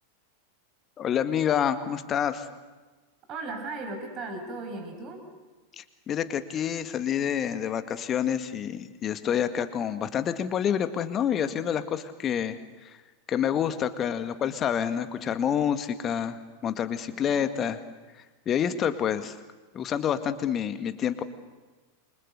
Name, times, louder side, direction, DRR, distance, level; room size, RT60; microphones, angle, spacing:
voice 1, 1.0-2.5 5.8-13.0 13.3-17.8 18.5-19.4 19.7-21.2, left 9 dB, 25° left, 10 dB, 1.9 m, -28 dB
voice 2, 3.3-5.2 17.1-17.5, right 3 dB, 35° right, 6 dB, 5.8 m, -37 dB
28.5 x 24.5 x 8.2 m, 1.3 s
figure-of-eight pair, 90°, 0 cm